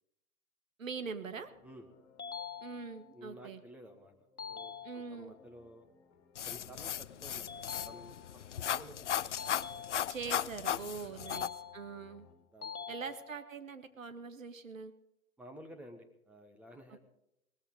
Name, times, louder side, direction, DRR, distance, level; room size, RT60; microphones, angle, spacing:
voice 1, 0.8-1.5 2.6-3.6 4.8-5.4 10.1-12.3 12.9-14.9, right 5 dB, 65° right, 10 dB, 1.8 m, -43 dB
sound 1, 1.1-12.3, left 5 dB, 30° left, 3.5 m, -64 dB
sound 2, 2.2-3.2 4.4-5.4 7.5-8.5 9.4-10.4 11.3-12.2 12.6-13.6, left 7 dB, 90° left, 1.4 m, -46 dB
voice 2, 3.1-4.1 4.4-5.9 6.4-10.0 11.3-11.4 12.5-13.1 15.4-17.0, equal, 5° right, 5 dB, 1.2 m, -54 dB
sound 3, 6.4-11.5, left 10 dB, 55° left, 0.6 m, -36 dB
19.0 x 14.5 x 3.8 m, 0.80 s
figure-of-eight pair, 130°, 43 cm